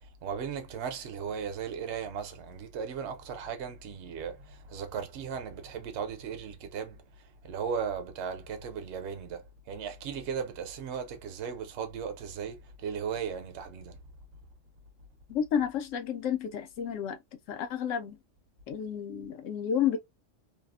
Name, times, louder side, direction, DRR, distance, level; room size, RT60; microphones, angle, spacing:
voice 1, 0.2-7.0 7.4-14.0, right 7 dB, 65° right, 0.9 m, -36 dB
voice 2, 15.3-17.2 17.5-18.2 18.7-20.0, left 8 dB, 85° left, 1.0 m, -31 dB
2.7 x 2.0 x 2.3 m
omnidirectional pair, 1.3 m